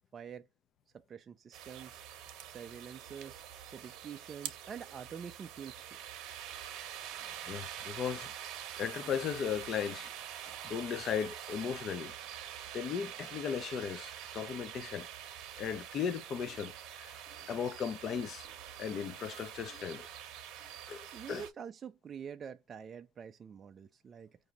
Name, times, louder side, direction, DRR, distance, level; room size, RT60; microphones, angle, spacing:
voice 1, 0.1-0.5 1.1-2.0 2.5-6.0 21.1-24.4, right 7 dB, 30° right, 0.3 m, -46 dB
sound 1, 1.5-21.5, right 10 dB, 65° right, 0.7 m, -46 dB
voice 2, 7.5-8.3 8.8-12.1 12.7-15.1 15.6-17.1 17.5-18.5 18.8-20.1 20.9-21.4, left 7 dB, 40° left, 0.5 m, -37 dB
4.9 x 2.6 x 2.9 m
cardioid pair, 140°, 0 cm